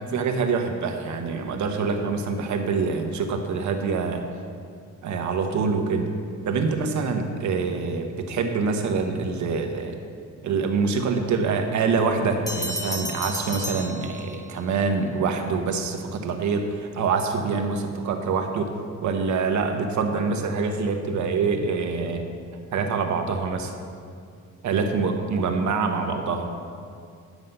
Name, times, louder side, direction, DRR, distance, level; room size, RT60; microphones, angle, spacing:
voice 1, 0.1-4.2 5.0-6.1 6.4-10.0 10.4-18.8 19.0-22.2 22.7-23.7 24.6-26.5, right 4 dB, 70° right, 4 dB, 1.1 m, -25 dB
Bell, 12.5-14.7, left 1 dB, 10° left, 0.9 m, -33 dB
9.5 x 7.8 x 5.4 m, 2.3 s
cardioid pair, 135°, 30 cm